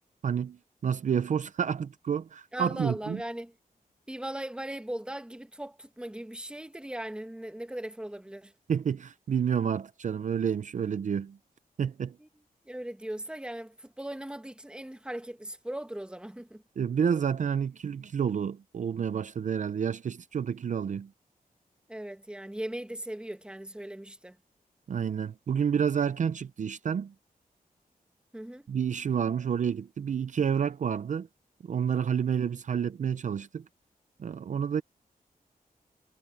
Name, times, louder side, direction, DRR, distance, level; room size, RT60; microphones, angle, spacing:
voice 1, 0.2-0.6 0.8-3.2 8.7-11.4 11.8-12.2 16.8-21.1 24.9-27.1 28.7-31.3 31.6-33.6 34.2-34.8, right 7 dB, 55° right, 0.5 m, -29 dB
voice 2, 2.5-3.5 4.1-8.5 12.2-12.3 12.6-16.6 21.9-24.4 28.3-28.6, right 1 dB, 5° right, 1.5 m, -38 dB
wide cardioid pair, 145°, 15 cm